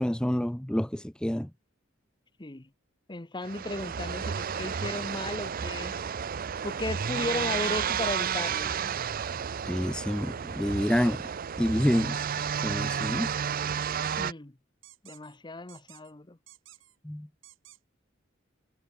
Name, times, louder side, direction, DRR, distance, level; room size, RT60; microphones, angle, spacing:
voice 1, 0.0-1.5 9.6-11.2 11.6-12.2 12.6-13.3 17.0-17.3, equal, 5° left, 0.6 m, -28 dB
voice 2, 3.1-5.9 6.6-8.9 14.2-14.5 15.0-16.4, left 2 dB, 20° left, 1.1 m, -35 dB
sound 1, 3.4-14.3, right 7 dB, 45° right, 0.5 m, -32 dB
sound 2, 11.9-12.3 13.0-13.4 13.8-14.2 14.8-15.4 15.7-16.1 16.5-17.0 17.4-17.8, right 14 dB, 70° right, 3.7 m, -53 dB
head